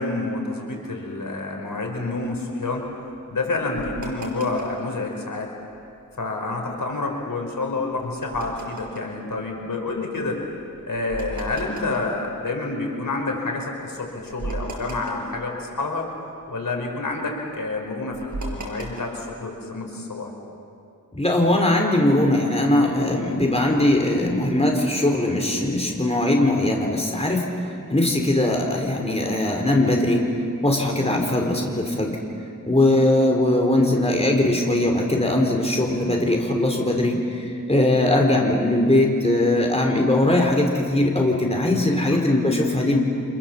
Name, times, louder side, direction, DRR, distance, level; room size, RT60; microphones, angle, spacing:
voice 1, 0.0-2.9 3.3-5.5 6.2-10.4 10.9-16.1 16.5-20.3 41.6-42.2, left 3 dB, 85° left, 1 dB, 4.8 m, -28 dB
sound 1, 1.8-5.0 5.4-6.0 6.5-13.2 13.6-13.7 14.0-16.1 16.4-19.4, right 2 dB, 65° right, 5.6 m, -37 dB
voice 2, 21.1-27.4 27.9-30.2 30.6-32.2 32.7-43.0, left 1 dB, 20° left, 0 dB, 4.3 m, -20 dB
30.0 x 26.5 x 7.4 m, 2.5 s
wide cardioid pair, 85°, 32 cm